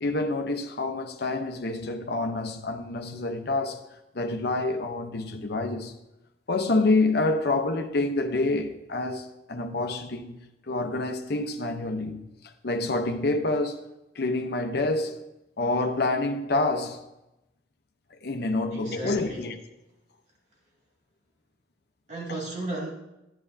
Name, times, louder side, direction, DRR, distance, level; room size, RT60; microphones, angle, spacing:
voice 1, 0.0-3.8 4.1-5.9 6.5-12.2 12.6-13.8 14.2-15.2 15.6-17.0 18.1-19.6, left 2 dB, 60° left, 0.8 m, -27 dB
voice 2, 18.7-19.5 22.1-22.9, right 2 dB, 40° right, 2.4 m, -34 dB
11.5 x 10.0 x 2.7 m
head